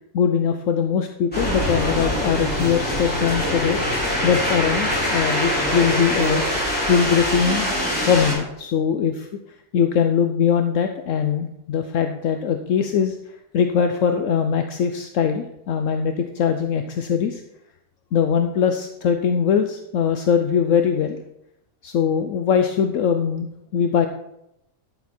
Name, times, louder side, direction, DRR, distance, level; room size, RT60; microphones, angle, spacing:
voice 1, 0.1-3.8 4.2-6.4 6.9-7.7 8.0-9.3 9.7-17.4 18.1-21.2 21.8-24.1, left 7 dB, 75° left, 7 dB, 1.0 m, -21 dB
sound 1, 1.3-8.3, equal, 5° left, 4.7 m, -23 dB
12.0 x 7.2 x 4.3 m, 0.83 s
omnidirectional pair, 1.4 m